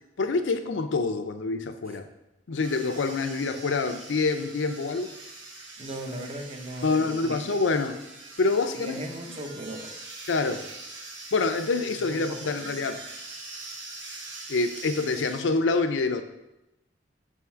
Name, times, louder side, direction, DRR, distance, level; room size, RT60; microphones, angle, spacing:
voice 1, 0.2-2.1 2.5-5.1 6.8-8.0 8.4-9.0 10.3-10.7 11.3-13.0 14.5-16.2, left 3 dB, 85° left, 8 dB, 0.5 m, -26 dB
sound 1, 2.6-15.4, right 3 dB, 85° right, 1.0 m, -43 dB
voice 2, 5.8-7.6 8.8-10.0 12.1-12.7, right 1 dB, 30° right, 4 dB, 0.7 m, -38 dB
6.1 x 3.6 x 4.4 m, 0.94 s
head